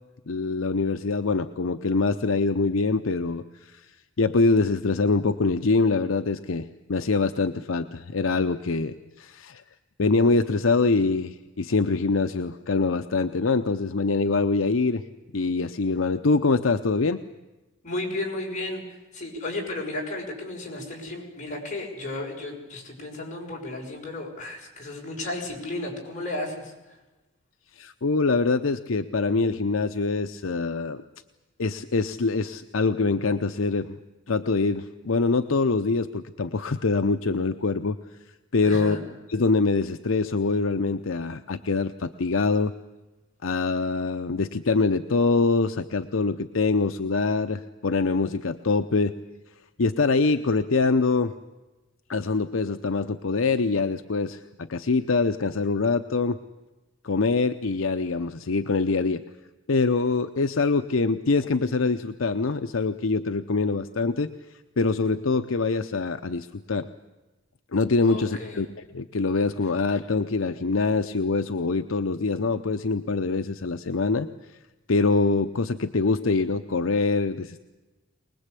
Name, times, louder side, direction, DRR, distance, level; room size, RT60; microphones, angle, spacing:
voice 1, 0.3-3.4 3.7-3.8 4.2-9.6 10.0-15.0 15.3-17.2 27.8-31.0 31.6-34.0 34.3-38.0 38.5-39.0 39.3-42.7 43.4-49.1 49.8-51.3 52.1-54.4 54.7-56.4 57.0-59.2 59.7-64.3 64.8-66.9 67.7-68.7 68.9-74.3 74.9-77.6, left 3 dB, 70° left, 8 dB, 0.7 m, -24 dB
voice 2, 17.8-27.0 38.6-39.0 68.0-68.7, left 2 dB, 40° left, -1 dB, 6.5 m, -34 dB
24.0 x 20.5 x 8.3 m, 1.1 s
head